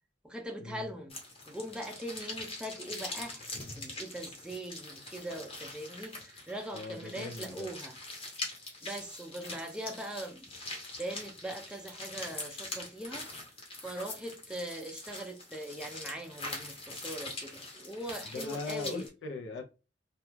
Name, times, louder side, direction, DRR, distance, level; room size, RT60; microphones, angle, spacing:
voice 1, 0.2-1.2 1.5-8.0 8.8-10.5 11.0-13.3 13.8-19.1, right 1 dB, 5° right, 0.3 m, -41 dB
sound 1, 1.1-19.1, left 2 dB, 35° left, 0.8 m, -43 dB
voice 2, 6.7-7.7 9.4-9.6 18.3-19.6, left 3 dB, 90° left, 0.4 m, -40 dB
2.2 x 2.2 x 2.9 m
head